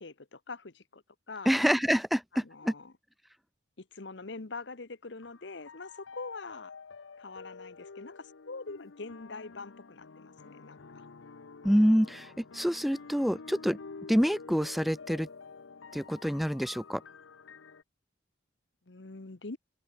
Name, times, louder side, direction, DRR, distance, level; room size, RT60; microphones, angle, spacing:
voice 1, 0.0-1.5 2.3-2.9 3.8-6.7 7.2-11.1 18.9-19.6, left 3 dB, 65° left, 1.1 m, -44 dB
voice 2, 1.5-2.7 11.6-13.8 14.1-15.3 15.9-17.0, equal, ahead, 0.4 m, -27 dB
sound 1, 5.2-17.8, left 4 dB, 85° left, 0.8 m, -49 dB
head